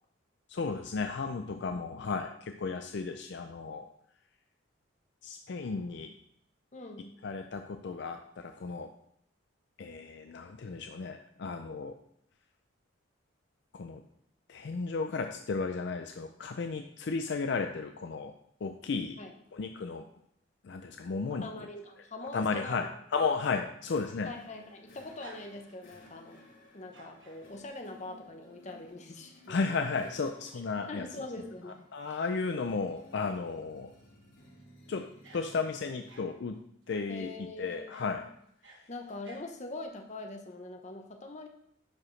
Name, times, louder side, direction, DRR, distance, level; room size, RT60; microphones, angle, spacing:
voice 1, 0.5-3.9 5.2-6.1 7.2-8.9 9.8-12.0 13.7-14.0 14.5-18.3 18.6-19.2 19.5-20.1 20.6-21.5 22.3-24.3 29.5-31.1 31.9-33.9 34.9-35.1 35.3-36.6 36.9-37.3 37.6-38.2, left 4 dB, 60° left, 6 dB, 0.4 m, -34 dB
voice 2, 6.7-7.2 19.2-19.3 21.3-22.9 24.3-26.4 26.7-29.6 30.5-32.2 37.1-38.3 38.9-41.5, left 2 dB, 35° left, 3 dB, 0.8 m, -43 dB
sound 1, 23.8-36.3, left 1 dB, 80° left, 3.3 m, -58 dB
sound 2, 24.6-26.0 26.8-27.4 28.7-29.2 29.6-29.7 31.1-31.2 31.4-31.6 34.4-34.7 35.2-36.3 36.9-37.2 37.9-38.1 38.4-39.5, right 3 dB, 70° right, 1.4 m, -55 dB
10.5 x 4.9 x 3.2 m, 0.71 s
head